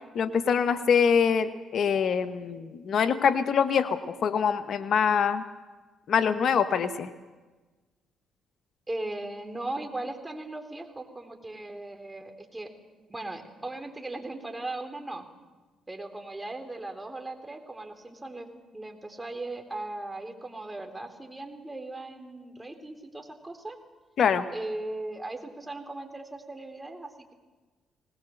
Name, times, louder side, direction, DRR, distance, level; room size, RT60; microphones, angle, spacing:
voice 1, 0.1-5.4 6.1-7.1 24.2-24.4, left 7 dB, 60° left, 11 dB, 1.0 m, -24 dB
voice 2, 8.9-12.7 13.1-15.2 15.9-18.5 18.7-23.8 24.5-27.3, right 2 dB, 15° right, 5 dB, 3.8 m, -38 dB
19.5 x 19.5 x 7.9 m, 1.3 s
supercardioid pair, 60°, 0 cm